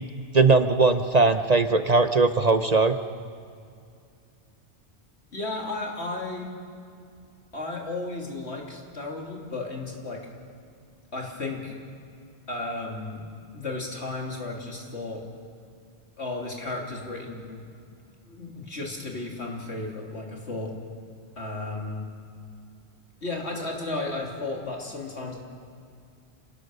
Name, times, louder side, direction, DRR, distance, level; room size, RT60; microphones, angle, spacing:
voice 1, 0.3-3.0, right 3 dB, 40° right, 9 dB, 0.8 m, -19 dB
voice 2, 5.3-6.5 7.5-10.2 11.1-11.7 12.5-13.2 13.5-15.2 16.2-17.7 18.3-20.7 21.4-22.1 23.2-25.4, left 2 dB, 75° left, -1 dB, 3.5 m, -34 dB
28.0 x 17.5 x 6.7 m, 2.4 s
omnidirectional pair, 1.1 m